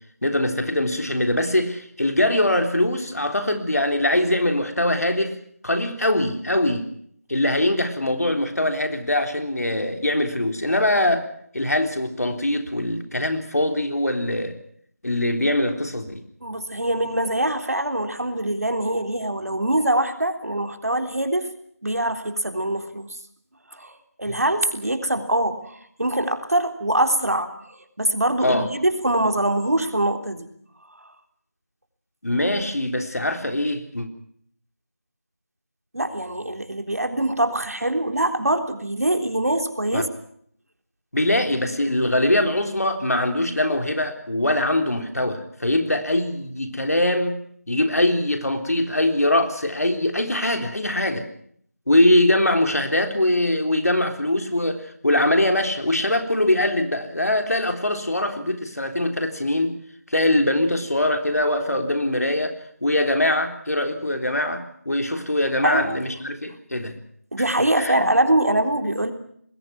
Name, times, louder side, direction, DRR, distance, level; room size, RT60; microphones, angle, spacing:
voice 1, 0.2-5.4 5.6-6.9 7.3-11.3 11.5-14.6 15.0-16.2 24.3-24.4 28.4-28.7 32.2-34.1 39.9-40.0 41.1-51.2 51.9-59.8 60.1-62.5 62.8-67.0 67.8-68.1, left 1 dB, 70° left, 6 dB, 3.8 m, -22 dB
voice 2, 16.4-21.5 21.8-23.2 23.7-30.5 31.0-31.1 35.9-40.1 65.6-66.0 67.3-69.1, right 1 dB, 65° right, 6 dB, 3.5 m, -23 dB
26.0 x 21.0 x 5.9 m, 0.64 s
figure-of-eight pair, 180°, 9 cm